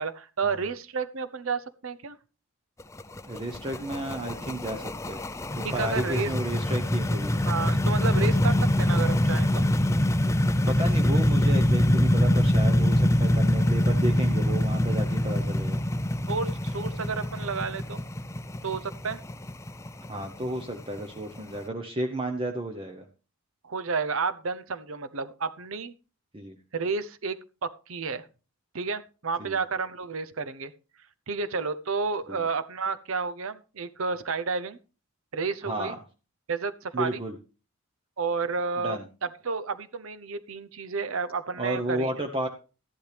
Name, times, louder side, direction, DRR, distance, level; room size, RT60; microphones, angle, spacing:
voice 1, 0.0-2.2 5.6-6.3 7.5-9.6 16.3-18.0 18.6-19.2 23.6-25.9 26.7-27.4 27.6-28.3 28.7-30.7 31.3-34.8 35.3-35.9 36.5-37.2 38.2-42.1, right 4 dB, 70° right, 12 dB, 0.8 m, -31 dB
sound 1, 2.8-21.6, left 1 dB, 15° left, 0.5 m, -24 dB
voice 2, 3.3-5.3 5.5-7.3 10.4-15.8 20.1-23.0 26.3-26.6 29.4-29.6 35.6-36.0 36.9-37.3 38.8-39.0 41.6-42.5, right 1 dB, 25° right, 4 dB, 0.9 m, -32 dB
13.5 x 11.0 x 3.4 m, 0.34 s
head